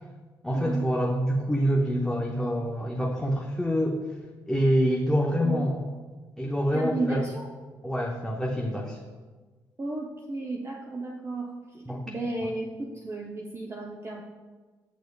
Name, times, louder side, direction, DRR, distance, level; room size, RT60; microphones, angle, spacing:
voice 1, 0.4-4.0 4.5-5.9 6.4-7.2 7.8-9.0 11.9-12.0 12.4-12.5, equal, 5° left, -2 dB, 0.8 m, -26 dB
voice 2, 6.7-7.5 9.8-14.2, right 2 dB, 30° right, -1 dB, 0.7 m, -33 dB
8.2 x 6.2 x 2.2 m, 1.3 s
hypercardioid pair, 50°, 10 cm